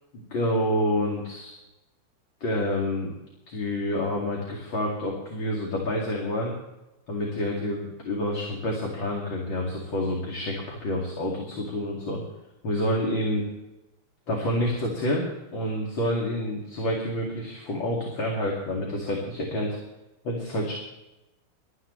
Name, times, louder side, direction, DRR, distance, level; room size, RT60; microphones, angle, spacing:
voice 1, 0.1-1.5 2.4-3.2 3.5-6.5 7.1-12.2 12.6-13.5 14.3-19.8 20.2-20.7, left 1 dB, 60° left, -2 dB, 3.2 m, -28 dB
23.0 x 13.0 x 3.3 m, 0.96 s
omnidirectional pair, 2.4 m